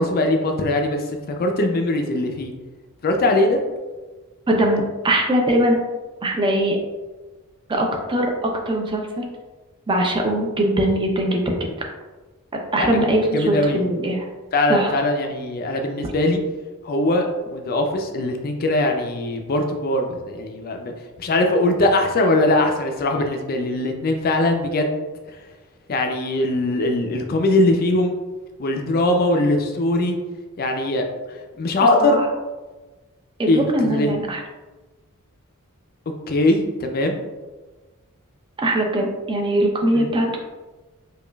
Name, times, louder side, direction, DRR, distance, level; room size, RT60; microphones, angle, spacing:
voice 1, 0.0-2.5 3.0-3.6 12.8-12.9 13.3-13.8 14.5-16.4 16.8-20.9 21.2-25.0 25.9-28.1 28.6-30.2 30.6-31.0 31.6-32.2 33.5-34.1 36.3-37.2 39.9-40.1, left 2 dB, 45° left, 4 dB, 0.4 m, -21 dB
voice 2, 4.5-5.8 6.2-6.8 7.7-9.2 9.9-11.7 12.7-14.3 14.7-14.9 32.0-32.2 33.4-34.4 38.6-40.4, right 1 dB, 20° right, 2 dB, 0.5 m, -21 dB
4.9 x 2.3 x 2.2 m, 1.2 s
head